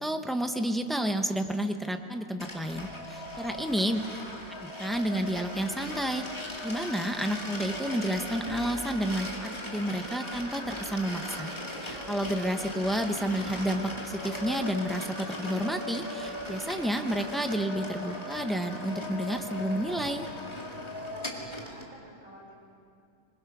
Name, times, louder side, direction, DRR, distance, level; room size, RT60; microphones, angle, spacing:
voice 1, 0.0-4.0 4.8-11.5 11.8-20.3, right 1 dB, ahead, 6 dB, 0.4 m, -30 dB
sound 1, 2.4-21.9, left 1 dB, 15° left, 2.2 m, -38 dB
voice 2, 3.5-4.7 21.1-22.5, right 1 dB, 55° right, -3 dB, 5.6 m, -50 dB
26.5 x 21.5 x 6.1 m, 2.4 s
omnidirectional pair, 1.9 m